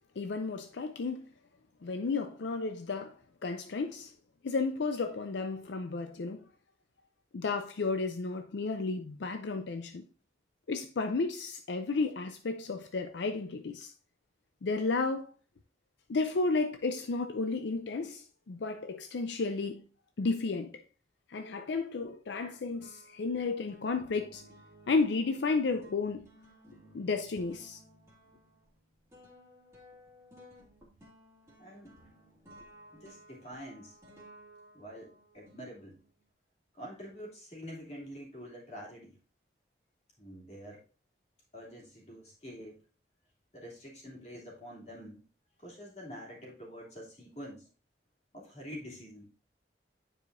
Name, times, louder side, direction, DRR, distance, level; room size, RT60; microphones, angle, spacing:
voice 1, 0.2-1.3 1.8-4.1 4.4-6.4 7.3-10.0 10.7-13.9 14.6-15.3 16.1-19.8 20.2-20.8 21.3-24.4 24.9-26.3 26.9-27.8, left 3 dB, 75° left, 0.5 m, -32 dB
sound 1, 22.0-22.5 22.8-36.2, equal, 15° right, 2.2 m, -57 dB
voice 2, 31.6-31.9 32.9-34.0 34.7-36.0 36.7-39.2 40.2-40.8 41.5-42.8 43.5-45.2 45.6-47.7 48.3-49.3, equal, 35° left, 2.7 m, -46 dB
9.6 x 4.9 x 2.5 m
head